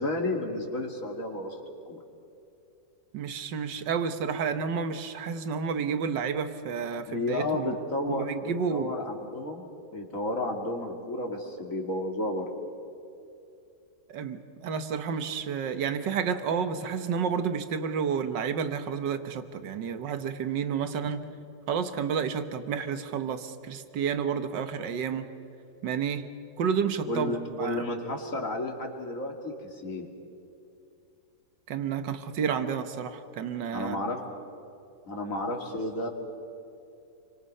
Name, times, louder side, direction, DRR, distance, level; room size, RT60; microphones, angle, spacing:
voice 1, 0.0-1.6 1.9-2.0 7.1-9.7 9.9-12.5 27.1-30.1 33.7-34.2 35.1-36.1, left 2 dB, 50° left, 2 dB, 2.9 m, -32 dB
voice 2, 3.1-7.7 8.0-8.9 14.1-21.2 21.7-25.3 25.8-26.2 26.6-27.3 27.6-27.9 31.7-34.0, right 6 dB, 85° right, 9 dB, 1.8 m, -30 dB
29.0 x 24.5 x 5.5 m, 2.6 s
omnidirectional pair, 1.9 m